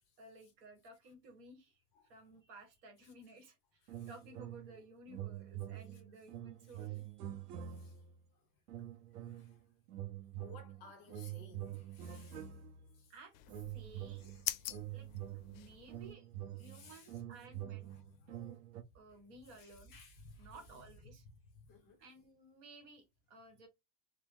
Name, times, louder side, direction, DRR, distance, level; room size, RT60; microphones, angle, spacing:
voice 1, 0.2-7.0 7.5-7.6 13.1-14.4 14.9-15.1 15.5-16.3 16.6-17.9 18.3-18.6 18.9-19.9 20.4-21.2 22.0-23.7, right 2 dB, 35° right, 1.0 m, -57 dB
sound 1, 3.9-4.8 5.1-8.2 8.7-9.6 9.9-13.0 13.5-18.8, right 12 dB, 85° right, 0.9 m, -46 dB
voice 2, 9.2-9.6 10.4-12.5 13.0-13.1 14.2-14.7 16.6-17.1 17.9-18.3 19.6-20.8 21.6-22.0, left 3 dB, 40° left, 0.9 m, -58 dB
sound 2, 13.3-16.1, left 14 dB, 85° left, 0.6 m, -45 dB
3.3 x 2.1 x 3.3 m
supercardioid pair, 180°, 45 cm